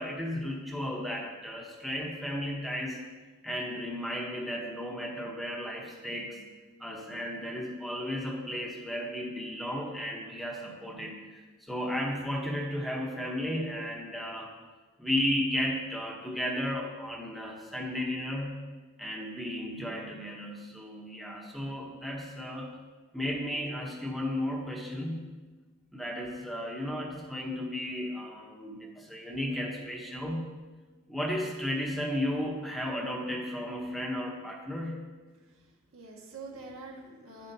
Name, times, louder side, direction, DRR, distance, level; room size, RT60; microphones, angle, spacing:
voice 1, 0.0-3.0 3.4-6.4 6.8-11.4 11.7-14.5 15.0-18.7 19.0-22.8 23.1-25.2 25.9-30.5 31.1-35.0, left 1 dB, ahead, -1 dB, 0.8 m, -34 dB
voice 2, 35.3-37.5, right 3 dB, 85° right, -1 dB, 1.4 m, -46 dB
9.5 x 7.9 x 2.7 m, 1.3 s
head